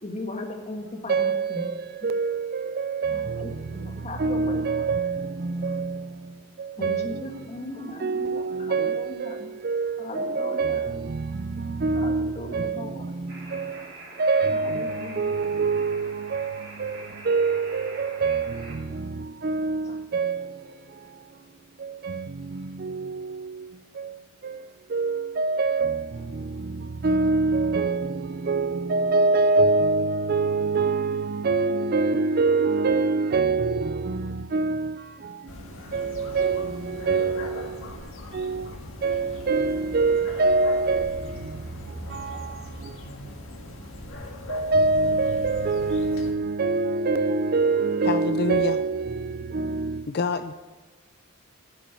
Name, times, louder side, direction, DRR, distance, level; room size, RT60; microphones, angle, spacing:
voice 1, 0.0-1.6 3.1-4.8 6.8-9.5 10.0-11.0 11.9-13.1 14.5-15.4 19.8-20.0, left 1 dB, 35° left, 1.6 m, -37 dB
voice 2, 1.1-3.5 4.2-6.0 6.6-7.2 8.0-13.8 14.2-19.1 19.4-20.5 21.8-22.3 22.5-23.5 24.0-24.1 24.4-24.6 24.9-26.1 27.0-34.9 35.9-37.7 38.3-38.7 39.0-41.3 42.1-42.4 44.5-50.0, right 3 dB, 45° right, 0.4 m, -25 dB
sound 1, 13.3-18.8, right 2 dB, 60° right, 3.1 m, -44 dB
sound 2, 35.5-46.3, left 1 dB, 75° left, 1.9 m, -40 dB
voice 3, 48.0-48.8 50.1-50.5, left 4 dB, 50° left, 0.4 m, -27 dB
10.5 x 7.2 x 8.2 m
head